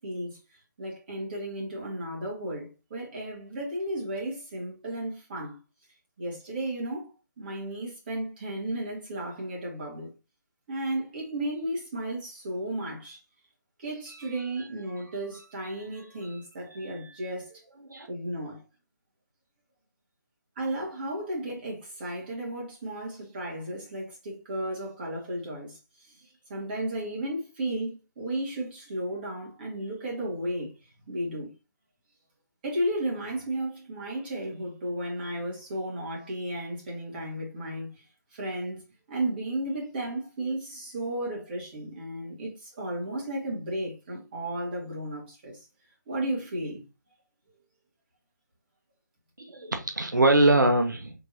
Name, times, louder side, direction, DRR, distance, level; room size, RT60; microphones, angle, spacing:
voice 1, 0.0-5.6 6.2-7.1 7.4-10.1 10.7-13.2 13.8-17.6 18.1-18.6 20.6-30.7 31.1-31.5 32.6-38.0 38.3-38.8 39.1-45.6 46.1-46.8, right 1 dB, 30° right, 1.7 m, -34 dB
voice 2, 16.7-17.2 17.9-18.1 49.4-51.1, right 1 dB, 85° right, 0.7 m, -24 dB
3.7 x 3.7 x 2.6 m
figure-of-eight pair, 150°, 10 cm